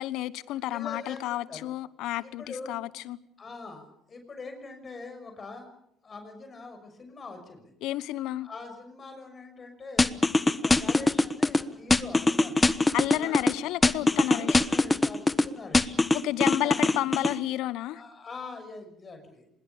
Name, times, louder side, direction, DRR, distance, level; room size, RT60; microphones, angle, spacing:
voice 1, 0.0-3.2 7.8-8.5 12.9-14.6 16.1-18.0, left 15 dB, 65° left, 19 dB, 1.0 m, -31 dB
voice 2, 0.7-1.7 2.2-2.8 3.4-5.7 6.0-7.7 8.4-10.2 10.6-12.7 13.1-13.4 14.3-16.0 16.6-16.8 17.9-19.5, left 3 dB, 35° left, 6 dB, 6.2 m, -43 dB
sound 1, 10.0-11.6 11.9-13.5 13.8-15.4 15.7-17.3, left 2 dB, 20° left, 1.3 m, -22 dB
25.5 x 21.5 x 7.2 m, 0.76 s
hypercardioid pair, 55°, 0 cm